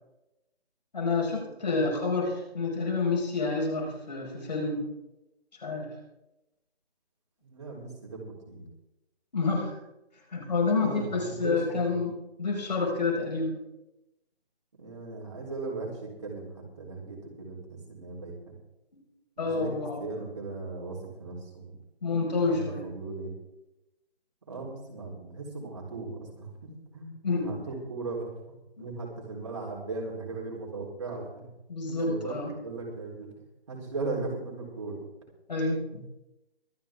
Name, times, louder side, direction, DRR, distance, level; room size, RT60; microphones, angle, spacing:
voice 1, 0.9-4.8 5.6-5.9 9.3-9.7 10.3-12.1 12.4-13.6 19.4-20.0 22.0-22.8 27.2-27.5 31.7-32.5 35.5-36.0, left 3 dB, 40° left, 0 dB, 5.1 m, -28 dB
voice 2, 7.4-8.6 10.8-12.0 14.8-15.9 16.2-17.6 17.9-18.5 19.4-21.7 22.4-23.3 24.5-26.5 26.9-31.5 31.9-32.3 32.6-33.3 33.7-35.0, right 3 dB, 30° right, -3 dB, 3.9 m, -38 dB
24.5 x 9.4 x 3.7 m, 0.93 s
hypercardioid pair, 175°, 31 cm